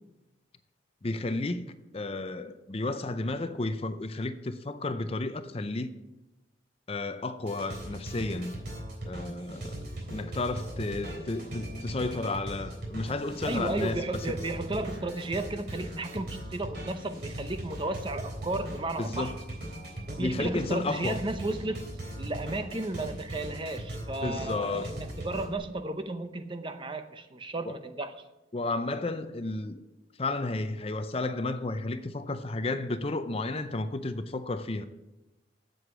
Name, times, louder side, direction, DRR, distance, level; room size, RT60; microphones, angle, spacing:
voice 1, 1.0-5.9 6.9-8.6 9.1-9.8 10.1-14.0 19.0-19.3 20.2-21.2 24.2-24.9 27.7-27.8 28.5-29.8 30.2-34.9, left 2 dB, 30° left, 0.5 m, -32 dB
sound 1, 7.4-25.6, right 1 dB, 55° right, 3.8 m, -39 dB
voice 2, 13.4-19.4 20.1-21.9 22.2-28.1, right 2 dB, 25° right, 0.7 m, -34 dB
7.9 x 7.9 x 8.3 m
head